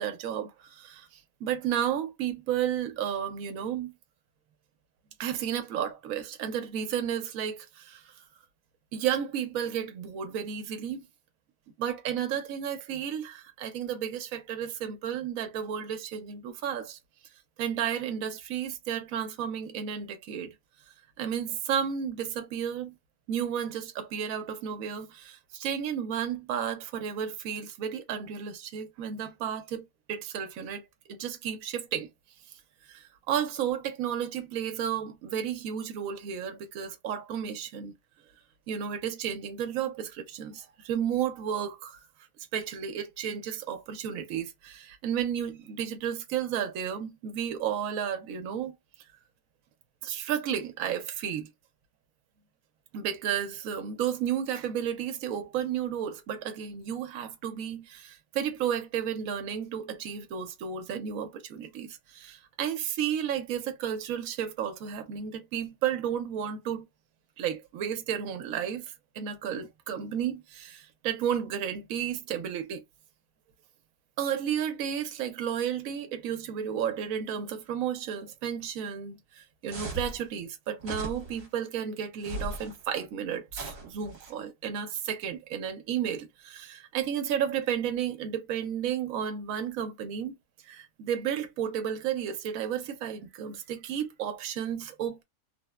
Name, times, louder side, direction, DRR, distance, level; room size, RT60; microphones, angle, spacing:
voice 1, 0.0-3.9 5.2-8.1 8.9-11.1 11.8-17.0 17.6-20.5 21.2-22.9 23.3-32.1 32.9-37.9 38.7-42.0 42.5-48.8 50.0-51.5 52.9-66.9 67.4-72.8 74.2-90.3 90.6-95.2, right 9 dB, 75° right, 1.0 m, -32 dB
sound 1, 79.7-80.2 80.8-81.5 82.2-82.8 83.5-84.3, right 2 dB, 50° right, 1.2 m, -38 dB
3.0 x 2.1 x 2.2 m
omnidirectional pair, 1.5 m